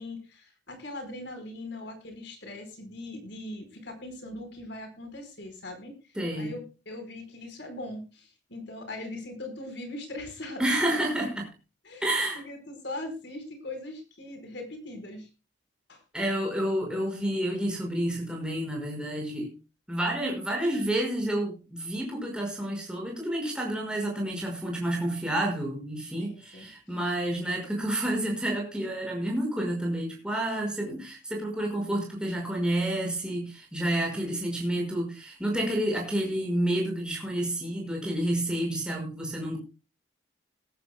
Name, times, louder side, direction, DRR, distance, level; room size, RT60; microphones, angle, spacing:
voice 1, 0.0-6.0 6.3-10.8 11.8-15.3 15.9-16.0 26.2-26.7, left 2 dB, 60° left, 6 dB, 4.5 m, -40 dB
voice 2, 6.2-6.5 10.6-11.5 12.0-12.4 16.1-19.5 19.9-39.6, right 1 dB, 5° right, 0 dB, 5.4 m, -29 dB
20.0 x 14.5 x 2.2 m, 0.31 s
head